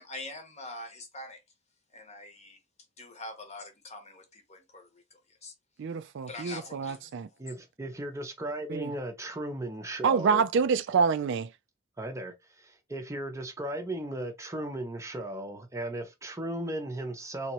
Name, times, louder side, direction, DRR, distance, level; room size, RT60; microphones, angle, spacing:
voice 1, 0.0-1.4 1.9-2.6 3.0-5.5 6.3-7.4, left 2 dB, 30° left, 0.9 m, -44 dB
voice 2, 5.8-7.3 8.7-8.9 10.0-11.5, right 5 dB, 60° right, 0.3 m, -27 dB
voice 3, 7.4-10.4 12.0-17.5, right 1 dB, 15° right, 0.6 m, -36 dB
3.4 x 2.9 x 3.0 m
head